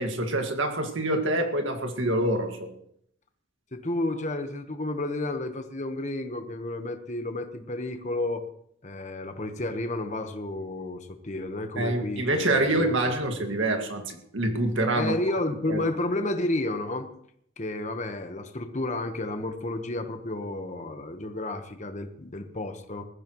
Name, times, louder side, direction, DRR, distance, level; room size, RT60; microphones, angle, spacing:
voice 1, 0.0-2.7 11.8-15.1 15.7-15.8, right 1 dB, 80° right, 4 dB, 2.0 m, -26 dB
voice 2, 3.7-8.4 8.8-13.1 15.0-17.1 17.6-23.1, left 2 dB, 40° left, 6 dB, 1.2 m, -31 dB
21.0 x 14.5 x 3.1 m, 0.70 s
head